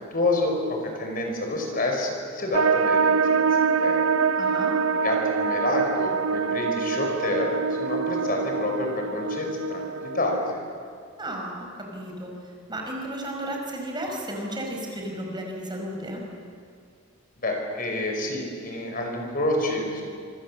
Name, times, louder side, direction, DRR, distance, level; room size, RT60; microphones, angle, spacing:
voice 1, 0.1-3.3 3.6-4.2 4.9-10.7 17.4-20.0, left 2 dB, 45° left, 2 dB, 5.3 m, -28 dB
sound 1, 2.5-10.5, right 5 dB, 90° right, 0.9 m, -25 dB
voice 2, 4.4-4.7 11.2-12.3 12.7-16.2, right 1 dB, 20° right, 0 dB, 5.0 m, -33 dB
26.5 x 25.5 x 7.5 m, 2.2 s
head